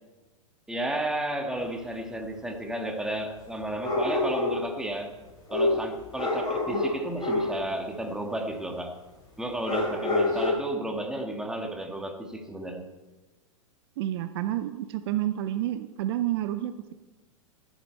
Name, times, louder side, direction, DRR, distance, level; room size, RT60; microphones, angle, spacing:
voice 1, 0.7-5.1 5.5-9.0 9.4-12.8, right 1 dB, 5° right, 3 dB, 1.6 m, -32 dB
sound 1, 1.6-1.7 3.8-4.7 5.5-7.6 9.6-10.5, left 2 dB, 20° left, 4.7 m, -27 dB
voice 2, 14.0-16.9, right 13 dB, 50° right, 11 dB, 0.7 m, -30 dB
14.5 x 11.0 x 4.5 m, 1.2 s
figure-of-eight pair, 100°, 17 cm